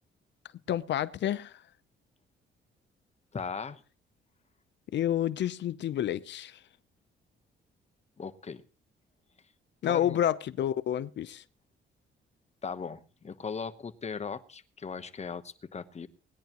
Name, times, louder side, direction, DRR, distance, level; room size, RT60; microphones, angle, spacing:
voice 1, 0.7-1.5 4.9-6.6 9.8-11.4, left 11 dB, 65° left, 0.7 m, -29 dB
voice 2, 3.3-3.8 8.2-8.6 9.8-10.2 12.6-16.1, left 5 dB, 35° left, 1.1 m, -38 dB
20.0 x 10.5 x 3.0 m
cardioid pair, 90°, 20 cm